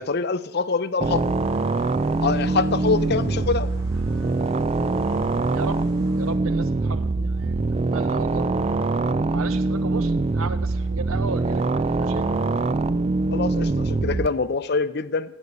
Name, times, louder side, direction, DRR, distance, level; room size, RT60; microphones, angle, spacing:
voice 1, 0.0-1.4 2.2-3.7 7.2-7.3 13.3-15.4, left 4 dB, 50° left, 13 dB, 0.6 m, -25 dB
sound 1, 1.0-14.3, right 3 dB, 30° right, 0.4 m, -23 dB
sound 2, 1.0-6.3, equal, 70° right, 5.2 m, -44 dB
voice 2, 5.5-5.8 6.2-7.6 7.9-8.4 9.3-12.3, right 4 dB, 85° right, 11 dB, 0.9 m, -35 dB
14.0 x 8.3 x 8.1 m, 0.99 s
head